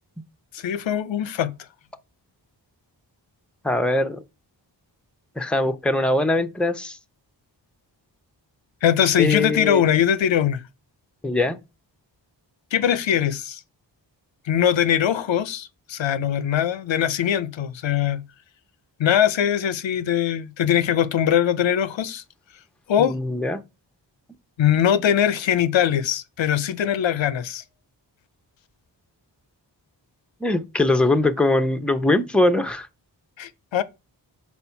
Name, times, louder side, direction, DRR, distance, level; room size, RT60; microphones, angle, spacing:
voice 1, 0.5-1.5 8.8-10.6 12.7-13.6 14.5-18.2 19.0-22.2 22.9-23.2 24.6-27.6 33.4-33.8, left 9 dB, 85° left, 0.6 m, -21 dB
voice 2, 3.6-4.2 5.4-7.0 9.2-9.8 11.2-11.6 23.0-23.6 30.4-32.9, left 2 dB, ahead, 0.6 m, -21 dB
4.3 x 4.2 x 5.7 m
cardioid pair, 60°, 45 cm